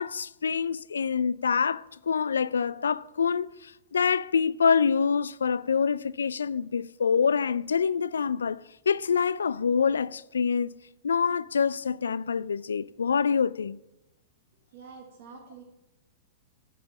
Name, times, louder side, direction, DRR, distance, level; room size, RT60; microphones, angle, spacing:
voice 1, 0.0-10.7 11.0-13.8, left 6 dB, 80° left, 0.3 m, -26 dB
voice 2, 14.7-15.6, right 5 dB, 60° right, 2.0 m, -47 dB
12.0 x 5.3 x 5.9 m
hypercardioid pair, 105°, 0 cm